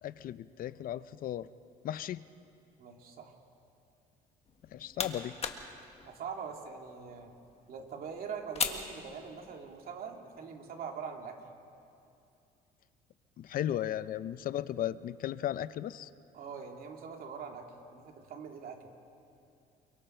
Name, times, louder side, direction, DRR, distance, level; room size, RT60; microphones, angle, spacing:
voice 1, 0.0-1.5 1.8-2.2 4.7-5.4 13.4-16.1, left 11 dB, 55° left, 15 dB, 0.6 m, -35 dB
voice 2, 2.8-3.3 6.0-7.3 7.7-11.4 16.3-18.8, right 6 dB, 60° right, 2 dB, 2.7 m, -43 dB
sound 1, 4.4-9.8, left 6 dB, 35° left, 1.6 m, -40 dB
29.0 x 23.5 x 4.5 m, 2.6 s
cardioid pair, 110°, 17 cm